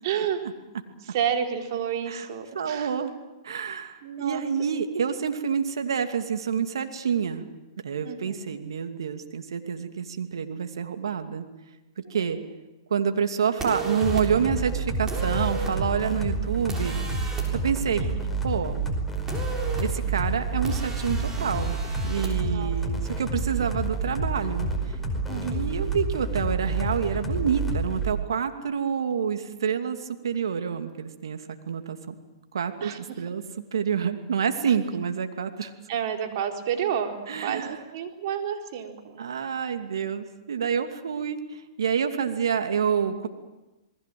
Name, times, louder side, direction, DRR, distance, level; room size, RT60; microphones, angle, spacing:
voice 1, 0.0-0.5 1.0-2.9 4.0-4.4 8.0-8.4 17.9-18.1 22.4-22.7 25.3-25.8 32.8-33.2 34.7-34.8 35.9-39.2, right 8 dB, 55° right, 3 dB, 4.2 m, -30 dB
voice 2, 2.5-3.1 3.4-7.4 7.8-11.5 12.1-12.4 12.9-17.0 17.5-18.1 18.4-18.8 19.8-21.8 22.0-25.0 25.4-32.1 32.5-33.4 33.7-35.7 37.3-37.8 39.2-43.3, right 7 dB, 75° right, 6 dB, 2.6 m, -28 dB
sound 1, 13.6-14.2 15.1-15.7 16.7-17.5 19.3-19.8 20.6-22.3, right 2 dB, 20° right, 7.1 m, -35 dB
sound 2, 14.0-28.1, right 3 dB, 5° left, 5.0 m, -29 dB
28.0 x 20.5 x 7.8 m, 1.1 s
hypercardioid pair, 120°, 2 cm